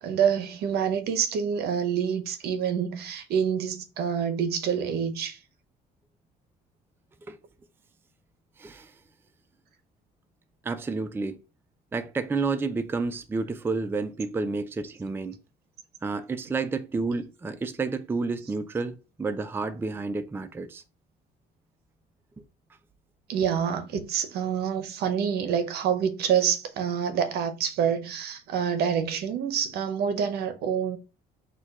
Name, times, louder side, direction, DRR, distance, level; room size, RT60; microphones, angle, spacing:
voice 1, 0.0-5.4 23.3-31.0, right 7 dB, 70° right, 0.8 m, -27 dB
voice 2, 8.6-8.9 10.6-11.4 11.9-15.4 16.0-20.8, right 4 dB, 15° right, 0.4 m, -30 dB
4.4 x 2.3 x 4.6 m
cardioid pair, 110°, 17 cm